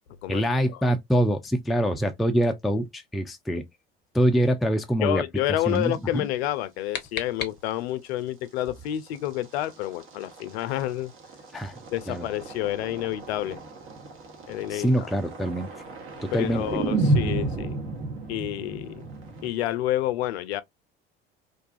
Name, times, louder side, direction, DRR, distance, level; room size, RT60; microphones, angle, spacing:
voice 1, 0.3-3.6 4.1-5.2 5.7-6.3 11.5-11.7 12.1-12.3 14.7-15.7 16.2-16.6, equal, ahead, 0.3 m, -24 dB
voice 2, 5.0-11.1 11.9-13.6 14.5-15.1 16.3-17.8 18.3-19.0 19.4-20.6, left 13 dB, 75° left, 0.5 m, -29 dB
sound 1, 5.7-5.8 7.0-7.1 7.5-7.6 8.6-19.5, right 2 dB, 40° right, 0.9 m, -32 dB
sound 2, 6.4-8.1, left 7 dB, 30° left, 0.7 m, -37 dB
2.5 x 2.3 x 2.4 m
hypercardioid pair, 70°, 32 cm